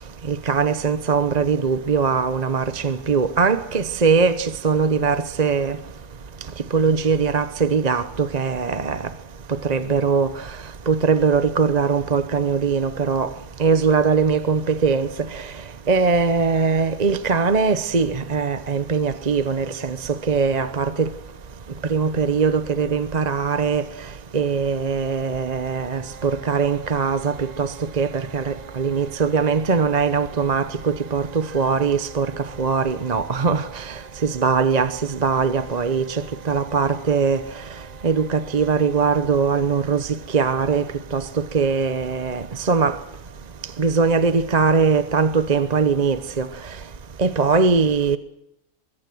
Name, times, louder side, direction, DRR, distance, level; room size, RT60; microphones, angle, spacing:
voice 1, 0.3-5.8 6.7-9.0 9.5-10.3 10.9-13.3 13.6-15.4 15.9-21.1 21.9-23.8 24.3-37.4 38.0-40.9 41.1-43.0 43.8-46.5 47.2-48.2, right 5 dB, 35° right, 0.8 m, -21 dB
24.0 x 22.0 x 6.2 m
omnidirectional pair, 1.7 m